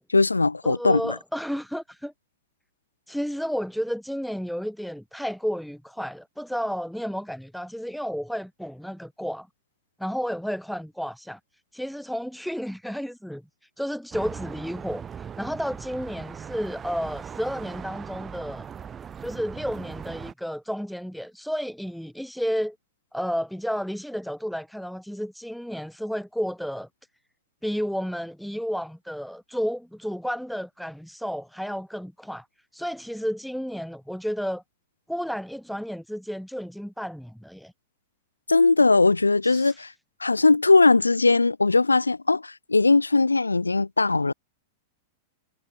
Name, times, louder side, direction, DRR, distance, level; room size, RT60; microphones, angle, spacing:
voice 1, 0.1-1.2 38.5-39.9 40.2-44.3, left 3 dB, 80° left, 0.8 m, -19 dB
voice 2, 0.6-2.1 3.1-9.5 10.0-11.4 11.7-13.4 13.8-18.7 19.2-22.8 23.1-26.9 27.6-32.5 32.7-34.6 35.1-37.7 39.4-39.7, equal, ahead, 3.8 m, -32 dB
sound 1, 14.1-20.3, right 7 dB, 20° right, 2.7 m, -39 dB
figure-of-eight pair, 95°, 0 cm